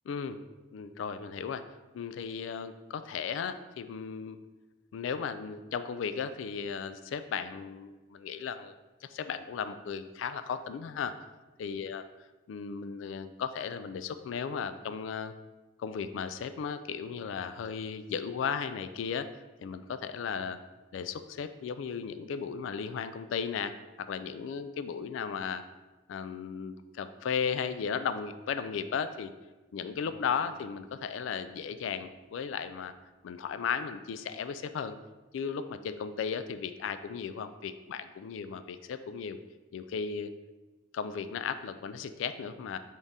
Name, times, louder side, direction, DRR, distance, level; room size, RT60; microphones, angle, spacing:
voice 1, 0.1-0.4 0.7-1.6 1.9-4.4 4.9-8.7 9.1-11.2 11.6-12.0 12.5-15.3 15.8-19.3 19.6-20.6 20.9-25.6 26.1-29.3 29.7-32.9 33.2-35.0 35.3-39.4 39.7-40.3 40.9-42.8, left 6 dB, 75° left, 11 dB, 0.3 m, -35 dB
Bass guitar, 30.0-34.1, right 3 dB, 30° left, 1.0 m, -60 dB
3.6 x 3.5 x 4.0 m, 1.2 s
head